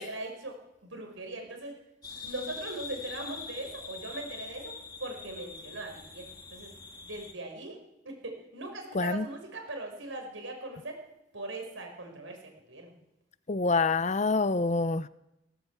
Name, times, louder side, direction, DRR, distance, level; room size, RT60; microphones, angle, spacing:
voice 1, 0.0-1.7 2.2-4.7 5.0-6.7 7.0-7.8 8.1-11.0 11.3-12.4 12.7-12.9, right 2 dB, 90° right, 3 dB, 5.4 m, -40 dB
sound 1, 2.0-7.3, left 4 dB, 20° left, 2.7 m, -44 dB
voice 2, 8.9-9.3 13.5-15.1, left 3 dB, 35° left, 15 dB, 0.6 m, -26 dB
18.0 x 17.5 x 8.3 m, 0.91 s
head